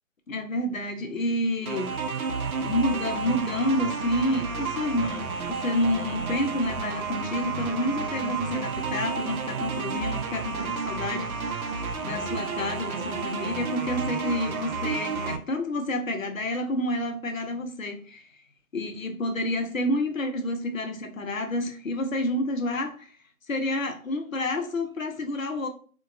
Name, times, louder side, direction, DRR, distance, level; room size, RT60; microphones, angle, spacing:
voice 1, 0.3-1.9 2.6-18.3 18.7-23.1 23.5-25.7, left 1 dB, 65° left, 0.6 m, -29 dB
sound 1, 1.7-15.4, right 5 dB, 80° right, 0.6 m, -31 dB
2.8 x 2.2 x 2.3 m
figure-of-eight pair, 180°, 42 cm